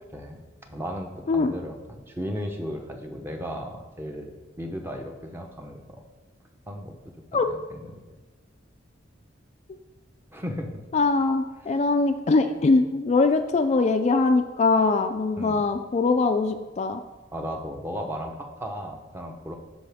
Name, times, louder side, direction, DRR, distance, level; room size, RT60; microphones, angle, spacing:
voice 1, 0.7-4.3 4.6-6.0 6.7-6.9 7.3-7.9 10.3-10.8 11.6-11.8 15.3-15.6 17.3-19.6, equal, 15° right, 3 dB, 0.8 m, -35 dB
voice 2, 10.9-17.0, left 3 dB, 35° left, 7 dB, 0.4 m, -22 dB
12.5 x 4.8 x 3.5 m, 1.2 s
head